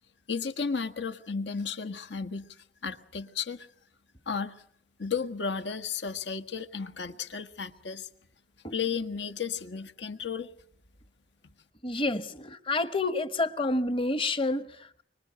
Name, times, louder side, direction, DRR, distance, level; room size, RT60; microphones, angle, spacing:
voice 1, 0.3-2.5 2.8-3.7 4.3-4.5 5.0-8.1 8.7-10.5, left 5 dB, 80° left, 1.5 m, -33 dB
voice 2, 11.8-15.0, left 2 dB, 30° left, 1.0 m, -29 dB
25.5 x 23.5 x 7.9 m
head